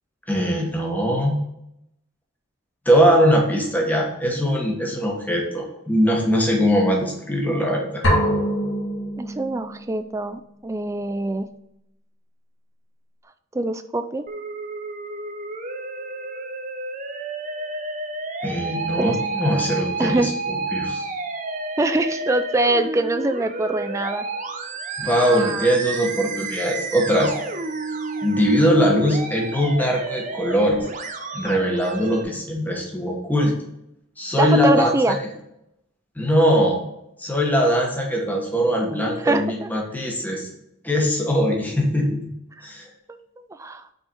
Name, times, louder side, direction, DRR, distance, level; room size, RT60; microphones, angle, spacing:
voice 1, 0.3-1.4 2.8-8.0 18.4-21.1 25.0-27.3 28.2-30.8 31.3-33.5 34.2-35.2 36.2-36.8 37.2-40.5 40.8-42.3 42.6-42.8, equal, 10° left, 0 dB, 1.2 m, -21 dB
sound 1, 8.0-9.9, equal, 70° left, 1.8 m, -23 dB
voice 2, 9.2-11.5 13.5-14.3 19.0-19.2 20.0-20.3 21.8-24.3 25.2-25.8 34.4-35.2 39.2-39.7 42.6-42.7 43.1-43.9, right 2 dB, 15° right, 9 dB, 0.3 m, -24 dB
Musical instrument, 14.3-32.2, right 3 dB, 40° right, 0.7 m, -31 dB
5.5 x 4.3 x 4.5 m, 0.82 s
head